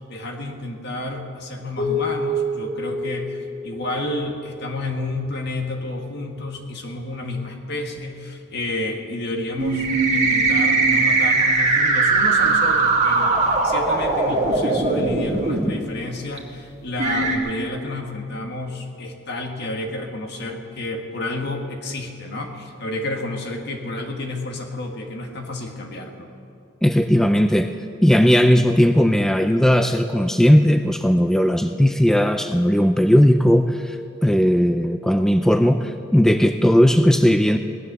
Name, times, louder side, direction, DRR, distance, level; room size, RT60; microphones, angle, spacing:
voice 1, 0.1-26.3, left 2 dB, 60° left, 3 dB, 1.7 m, -30 dB
sound 1, 1.8-4.3, equal, 85° left, 4.2 m, -27 dB
sound 2, 9.6-15.6 16.4-16.5 17.0-17.4, right 3 dB, 40° right, 2.1 m, -19 dB
voice 2, 26.8-27.7 28.0-34.0 34.2-37.6, equal, 5° left, 7 dB, 0.4 m, -17 dB
17.5 x 11.0 x 6.8 m, 2.5 s
head